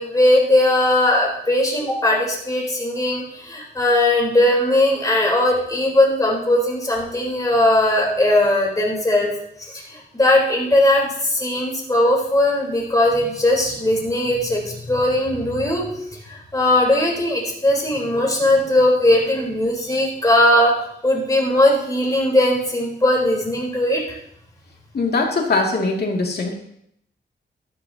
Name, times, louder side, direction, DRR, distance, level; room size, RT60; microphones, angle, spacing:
voice 1, 0.0-9.3 9.6-15.9 16.3-20.7 21.0-24.2, left 1 dB, 20° left, -3 dB, 3.9 m, -19 dB
voice 2, 24.9-26.5, left 3 dB, 55° left, 0 dB, 2.5 m, -21 dB
13.5 x 13.0 x 2.9 m, 0.72 s
wide cardioid pair, 125°, 19 cm